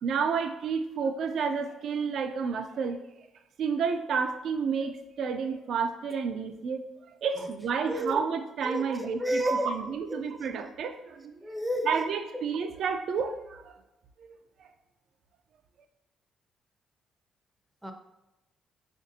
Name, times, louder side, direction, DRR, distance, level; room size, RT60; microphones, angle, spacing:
voice 1, 0.0-3.0 3.6-6.8 7.1-11.3 11.9-13.7 14.2-14.7, right 6 dB, 70° right, 7 dB, 0.3 m, -30 dB
voice 2, 7.9-8.2 8.6-9.7 10.1-10.2 11.4-12.0 17.8-17.9, equal, 5° right, 4 dB, 0.5 m, -31 dB
5.7 x 2.5 x 2.6 m, 0.94 s
cardioid pair, 90°, 0 cm